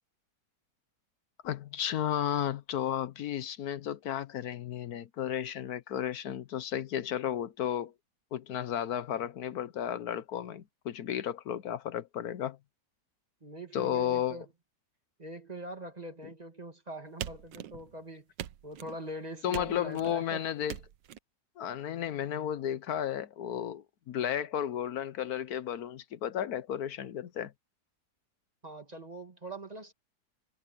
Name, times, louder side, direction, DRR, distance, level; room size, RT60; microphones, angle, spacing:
voice 1, 1.4-7.9 8.3-12.6 13.7-14.4 19.4-20.7 21.6-27.5, left 10 dB, 65° left, 1.2 m, -33 dB
voice 2, 13.4-14.5 15.2-18.3 18.6-20.4 28.6-29.9, right 1 dB, 20° right, 2.4 m, -43 dB
sound 1, 17.2-18.0 18.4-19.0 19.5-20.2 20.7-21.2, right 12 dB, 85° right, 1.5 m, -41 dB
omnidirectional pair, 1.9 m